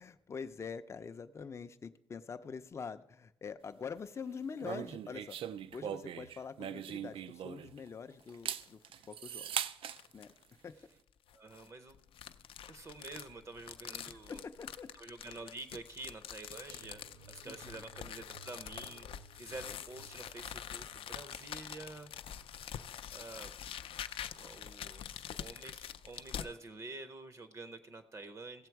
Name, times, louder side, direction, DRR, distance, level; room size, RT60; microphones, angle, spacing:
voice 1, 0.0-5.4 5.7-8.8 9.1-9.5 10.1-10.3 10.6-10.7 14.3-14.9 17.4-17.8, left 6 dB, 30° left, 10 dB, 0.4 m, -45 dB
sound 1, 4.6-7.9 8.3-10.0, right 9 dB, 85° right, 0.4 m, -40 dB
sound 2, 8.2-8.7 9.2-9.3 9.9-10.4 11.3-26.5, left 9 dB, 90° left, 0.4 m, -46 dB
voice 2, 11.3-12.0 12.7-14.4 14.9-19.1 19.3-22.1 23.1-23.5 24.3-28.7, right 3 dB, 35° right, 11 dB, 0.6 m, -48 dB
sound 3, 16.7-23.8 24.1-24.4 24.8-24.9, right 4 dB, 70° right, 1.0 m, -59 dB
15.5 x 7.7 x 4.6 m, 0.83 s
wide cardioid pair, 170°, 9 cm